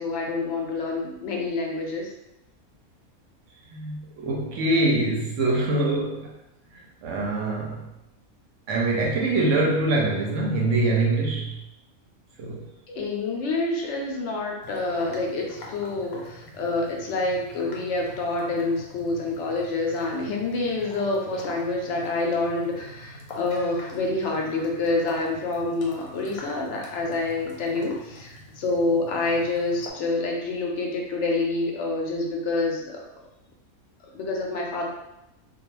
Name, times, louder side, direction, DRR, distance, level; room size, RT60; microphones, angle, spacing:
voice 1, 0.0-2.1 12.9-33.1 34.1-34.9, left 2 dB, 65° left, 0 dB, 0.8 m, -27 dB
voice 2, 3.7-6.3 6.7-7.9 8.7-11.6 12.4-12.7, right 2 dB, 70° right, -1 dB, 0.8 m, -24 dB
sound 1, 14.6-29.9, left 1 dB, 85° left, 1.1 m, -44 dB
2.3 x 2.2 x 3.0 m, 0.87 s
omnidirectional pair, 1.5 m